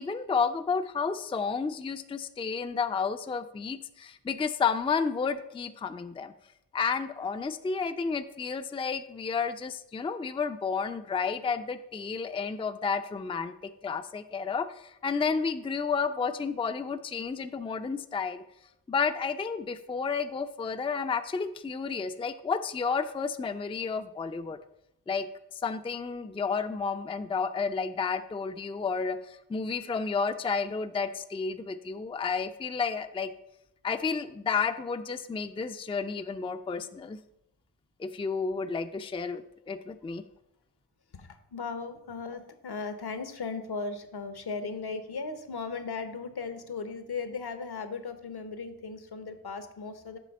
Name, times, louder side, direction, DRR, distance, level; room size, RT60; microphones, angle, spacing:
voice 1, 0.0-6.3 6.7-18.4 18.9-24.6 25.1-33.3 33.8-37.2 38.0-40.2, left 5 dB, 15° left, 9 dB, 0.4 m, -31 dB
voice 2, 41.1-50.2, left 4 dB, 65° left, 9 dB, 0.9 m, -37 dB
7.5 x 3.3 x 5.3 m, 0.82 s
cardioid pair, 45°, 41 cm